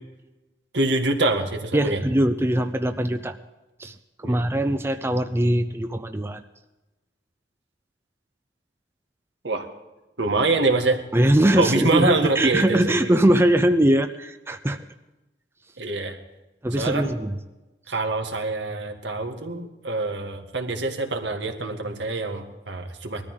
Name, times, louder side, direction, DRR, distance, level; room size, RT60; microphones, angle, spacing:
voice 1, 0.7-2.0 4.2-4.4 9.4-9.7 10.2-11.0 11.6-13.1 15.8-16.2 16.8-17.1 17.9-23.2, right 3 dB, 80° right, 4 dB, 1.8 m, -25 dB
voice 2, 1.7-3.4 3.8-3.9 4.2-6.4 11.1-14.8 16.6-17.4, right 1 dB, 15° right, 9 dB, 0.5 m, -21 dB
20.5 x 13.5 x 3.8 m, 1.0 s
head